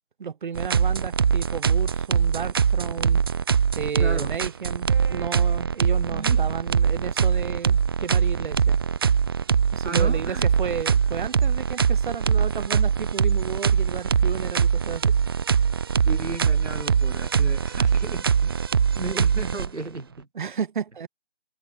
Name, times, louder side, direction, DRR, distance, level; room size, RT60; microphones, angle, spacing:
voice 1, 0.2-3.2 3.8-8.8 9.7-15.2 20.3-21.1, right 7 dB, 45° right, 3.9 m, -33 dB
sound 1, 0.6-20.0, right 7 dB, 20° right, 0.7 m, -22 dB
voice 2, 4.0-4.4 6.1-6.5 9.8-10.5 16.1-18.6 18.9-20.3, right 2 dB, 85° right, 2.7 m, -34 dB
figure-of-eight pair, 150°, 34 cm